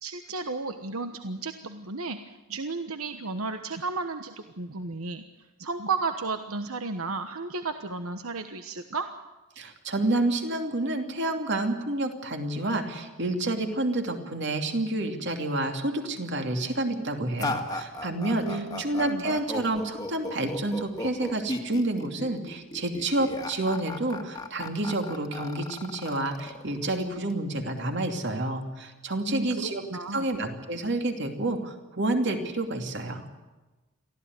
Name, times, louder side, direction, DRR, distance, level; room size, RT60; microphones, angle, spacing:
voice 1, 0.0-5.2 5.6-9.1 18.4-19.4 29.2-30.3, right 3 dB, 75° right, 7 dB, 1.2 m, -33 dB
voice 2, 9.6-29.8 30.1-33.3, right 2 dB, 50° right, 5 dB, 2.7 m, -29 dB
sound 1, 17.4-27.3, left 1 dB, 15° left, 1.8 m, -36 dB
23.5 x 15.5 x 9.5 m, 1.1 s
head